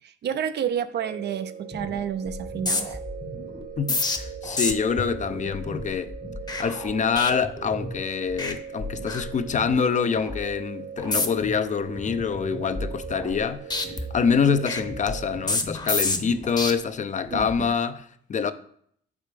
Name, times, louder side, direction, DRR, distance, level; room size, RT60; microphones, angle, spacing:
voice 1, 0.0-3.0 17.3-17.7, right 8 dB, 60° right, 0.6 m, -30 dB
sound 1, 1.0-15.5, right 8 dB, 90° right, 1.1 m, -40 dB
sound 2, 1.7-2.0 2.3-8.0 8.3-8.5 8.8-9.8 10.2-10.4 11.0-11.5 11.9-13.4 13.7-16.7 17.3-17.6, left 3 dB, 20° left, 0.9 m, -31 dB
voice 2, 3.8-6.1 6.6-13.6 14.1-18.5, left 6 dB, 40° left, 0.5 m, -26 dB
6.4 x 4.9 x 5.1 m
cardioid pair, 90°, 20 cm